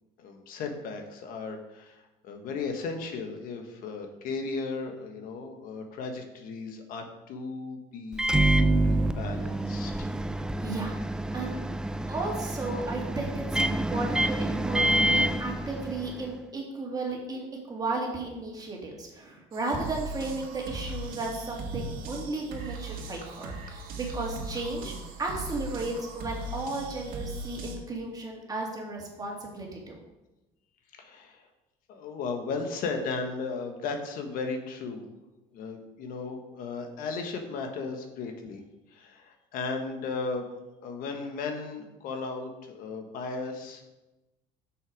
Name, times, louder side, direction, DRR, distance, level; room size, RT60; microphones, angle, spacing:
voice 1, 0.2-10.1 31.0-31.5 31.9-35.1 35.5-38.6 38.9-40.5 40.8-43.8, left 4 dB, 65° left, 5 dB, 1.3 m, -36 dB
Microwave oven, 8.1-16.3, right 1 dB, 5° right, 0.3 m, -27 dB
voice 2, 10.6-10.9 11.3-11.6 12.1-24.9 25.2-30.0, right 2 dB, 25° right, -1 dB, 2.2 m, -34 dB
sound 1, 19.5-27.8, right 2 dB, 70° right, 1.6 m, -39 dB
6.5 x 6.3 x 5.2 m, 1.0 s
cardioid pair, 115°, 16 cm